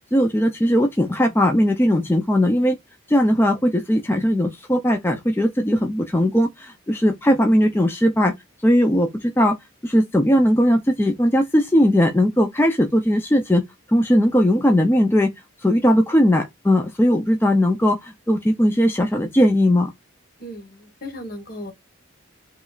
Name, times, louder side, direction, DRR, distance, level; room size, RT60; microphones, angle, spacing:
voice 1, 0.1-2.8 3.1-8.3 8.6-9.6 9.8-13.6 13.9-15.3 15.6-19.9, equal, 10° left, 0.4 m, -18 dB
voice 2, 20.4-21.7, left 1 dB, 45° left, 1.2 m, -36 dB
5.0 x 3.0 x 2.4 m
head